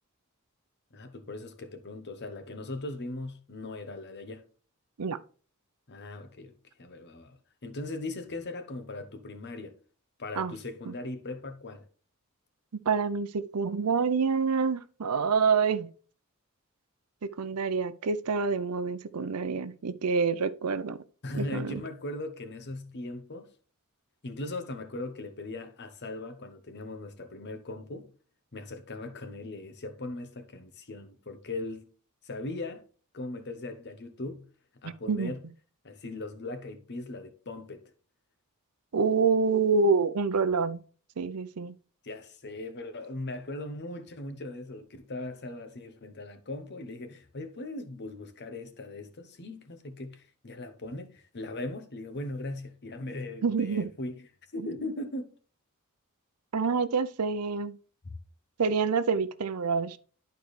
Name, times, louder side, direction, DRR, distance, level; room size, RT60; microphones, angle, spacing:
voice 1, 0.9-4.4 5.9-9.8 10.2-11.8 21.2-23.5 24.2-28.1 28.5-31.9 32.2-32.8 33.1-34.5 34.8-35.4 35.8-37.8 42.0-54.3 54.5-55.3 58.0-58.1, left 2 dB, 50° left, 1.0 m, -39 dB
voice 2, 12.9-15.9 17.4-21.0 21.3-21.8 34.8-35.3 38.9-40.8 41.2-41.7 53.4-53.9 54.6-54.7 56.5-57.8 58.6-60.0, right 5 dB, 90° right, 0.6 m, -27 dB
11.5 x 4.6 x 3.2 m
head